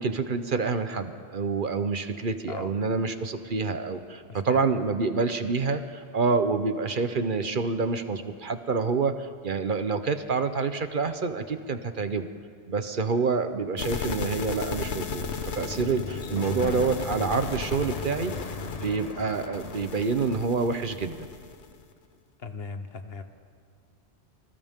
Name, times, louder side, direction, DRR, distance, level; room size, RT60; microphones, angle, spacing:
voice 1, 0.0-12.3 12.7-15.2 15.5-18.3 18.8-21.3, right 4 dB, 50° right, 9 dB, 1.0 m, -27 dB
voice 2, 4.3-4.7 22.4-23.2, left 4 dB, 65° left, 8 dB, 1.3 m, -38 dB
sound 1, 13.8-21.8, left 5 dB, 90° left, 1.4 m, -35 dB
Sliding door, 15.2-20.4, left 4 dB, 35° left, 0.9 m, -38 dB
28.0 x 25.5 x 3.7 m, 2.2 s
omnidirectional pair, 1.1 m